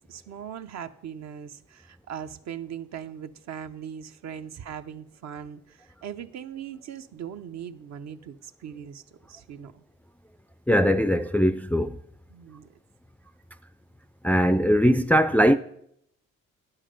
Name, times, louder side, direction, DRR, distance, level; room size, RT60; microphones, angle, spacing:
voice 1, 0.1-9.0 9.3-9.8 12.3-12.7, right 8 dB, 60° right, 0.7 m, -39 dB
voice 2, 10.7-12.0 14.2-15.6, equal, 5° left, 0.3 m, -20 dB
10.5 x 7.3 x 5.1 m
cardioid pair, 90°, 30 cm